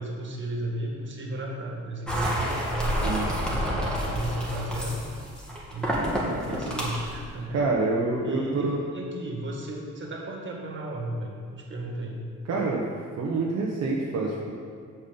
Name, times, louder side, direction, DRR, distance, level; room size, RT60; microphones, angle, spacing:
voice 1, 0.0-3.0 3.7-5.0 5.7-7.6 8.2-12.2, right 1 dB, 40° right, -1 dB, 2.0 m, -34 dB
sound 1, 2.1-7.2, equal, 5° left, 2.2 m, -29 dB
voice 2, 7.5-8.8 12.5-12.9 13.2-14.5, right 3 dB, 60° right, -3 dB, 1.1 m, -26 dB
7.1 x 5.5 x 7.0 m, 2.2 s
cardioid pair, 90°, 30 cm